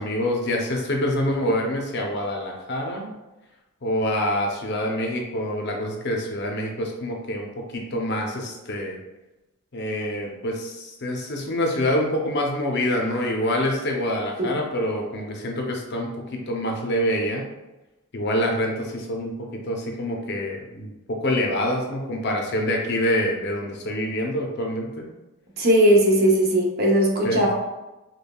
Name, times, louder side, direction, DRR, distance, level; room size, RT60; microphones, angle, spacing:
voice 1, 0.0-3.1 3.8-9.0 9.7-17.5 18.1-25.1 27.2-27.4, left 1 dB, 50° left, 0 dB, 0.6 m, -26 dB
voice 2, 25.6-27.6, equal, 45° right, -1 dB, 0.6 m, -19 dB
5.2 x 2.2 x 2.2 m, 1.0 s
head